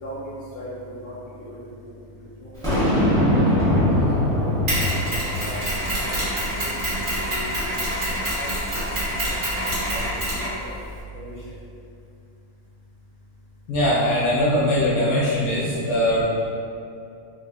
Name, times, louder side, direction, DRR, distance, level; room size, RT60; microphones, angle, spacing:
voice 1, 0.0-1.9 2.4-2.8 3.1-3.2 3.9-4.0 4.4-4.5 5.4-5.5 5.8-6.7 7.3-7.4 8.4-8.5 9.1-9.3 9.7-10.7 11.1-11.3, equal, 40° left, -10 dB, 0.9 m, -38 dB
Boom, 2.6-5.9, left 1 dB, 5° left, 0.8 m, -21 dB
Mechanisms, 4.7-11.0, equal, 45° right, 1.2 m, -26 dB
voice 2, 13.7-16.2, left 1 dB, 75° left, -8 dB, 1.0 m, -21 dB
3.4 x 2.1 x 2.6 m, 2.5 s
omnidirectional pair, 1.6 m